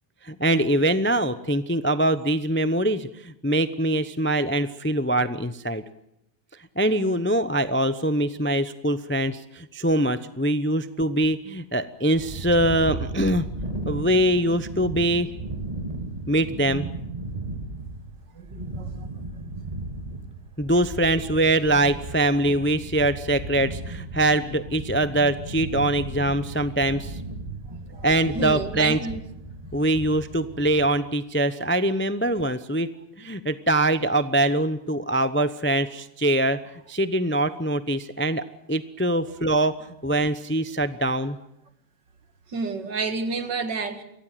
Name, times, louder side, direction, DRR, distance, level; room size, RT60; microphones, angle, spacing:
voice 1, 0.2-5.8 6.8-13.5 13.8-15.3 16.3-16.9 20.6-27.2 28.0-29.0 29.7-32.9 33.2-36.6 36.9-39.8 40.0-41.4, right 1 dB, 15° left, 0.4 m, -23 dB
sound 1, 12.1-30.8, right 2 dB, 20° right, 3.3 m, -35 dB
voice 2, 18.3-19.1 27.7-28.1 28.3-29.2 42.5-44.0, right 4 dB, 80° right, 2.5 m, -30 dB
24.0 x 17.0 x 9.2 m
omnidirectional pair, 1.9 m